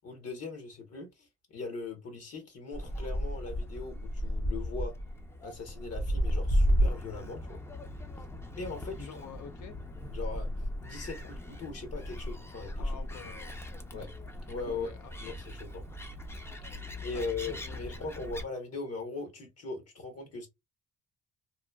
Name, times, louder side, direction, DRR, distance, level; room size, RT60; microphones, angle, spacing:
voice 1, 0.0-4.9 5.4-7.6 8.6-9.1 10.1-12.9 13.9-14.1 14.5-14.9 15.2-15.8 17.0-20.5, left 4 dB, 55° left, 1.1 m, -40 dB
Gull seagull, 2.7-18.4, equal, 10° left, 0.5 m, -34 dB
voice 2, 8.9-9.7 12.8-13.5 14.7-15.3 17.1-17.9, left 6 dB, 75° left, 0.8 m, -48 dB
3.0 x 2.2 x 2.2 m
cardioid pair, 90°, 30 cm